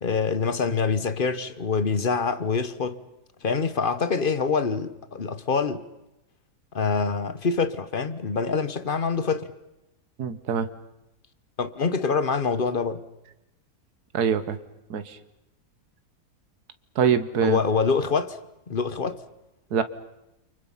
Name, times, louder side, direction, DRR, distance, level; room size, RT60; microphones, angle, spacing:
voice 1, 0.0-3.0 3.4-5.9 6.7-9.5 11.6-13.0 17.4-18.4 18.7-19.2, left 5 dB, 35° left, 1.1 m, -25 dB
voice 2, 10.2-10.7 14.1-14.6 14.9-15.2 16.9-17.6 19.7-19.8, right 7 dB, 75° right, 1.7 m, -24 dB
30.0 x 24.5 x 5.7 m
omnidirectional pair, 1.7 m